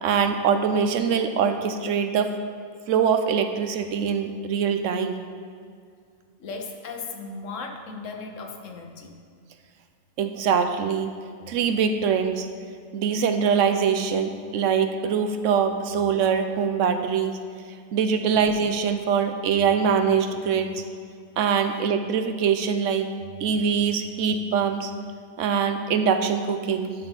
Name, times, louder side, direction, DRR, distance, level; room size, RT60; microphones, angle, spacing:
voice 1, 0.0-2.3 2.9-5.2 10.2-11.1 11.5-12.5 12.9-17.4 17.9-20.8 21.4-23.1 23.4-24.9 25.4-26.9, right 6 dB, 75° right, 8 dB, 1.0 m, -23 dB
voice 2, 6.4-9.1 21.6-21.8, left 4 dB, 75° left, 4 dB, 1.2 m, -37 dB
11.5 x 5.7 x 4.0 m, 2.2 s
omnidirectional pair, 1.3 m